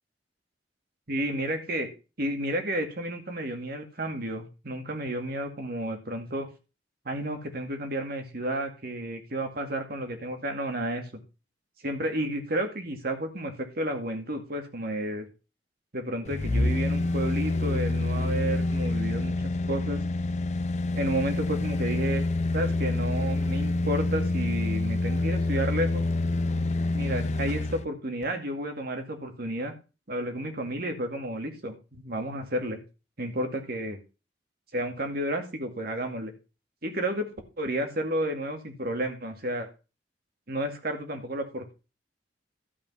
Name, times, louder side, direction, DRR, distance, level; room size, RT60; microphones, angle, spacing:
voice 1, 1.1-1.9 2.2-6.5 7.1-11.0 11.8-15.3 15.9-20.0 20.9-22.2 22.5-26.0 26.9-29.7 30.1-32.8 33.2-34.0 34.7-36.3 36.8-37.3 37.6-39.7 40.5-41.7, right 1 dB, 60° right, 5 dB, 2.2 m, -31 dB
sound 1, 16.2-27.8 28.2-28.3, left 2 dB, 40° left, 0.6 m, -27 dB
12.5 x 5.4 x 5.6 m, 0.31 s
head